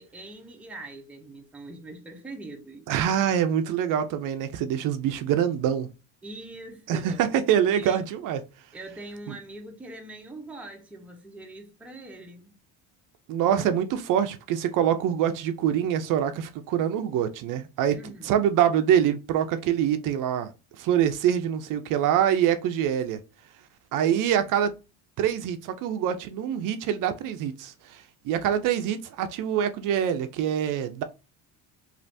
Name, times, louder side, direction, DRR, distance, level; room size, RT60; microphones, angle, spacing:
voice 1, 0.0-2.9 6.2-7.3 7.7-8.1 8.7-12.5 17.9-18.3, right 2 dB, 5° right, 0.5 m, -42 dB
voice 2, 2.9-5.9 6.9-8.4 13.3-18.0 18.2-20.5 20.8-23.2 23.9-24.7 25.2-31.0, right 9 dB, 55° right, 0.5 m, -25 dB
3.3 x 2.5 x 2.5 m
cardioid pair, 135°, 38 cm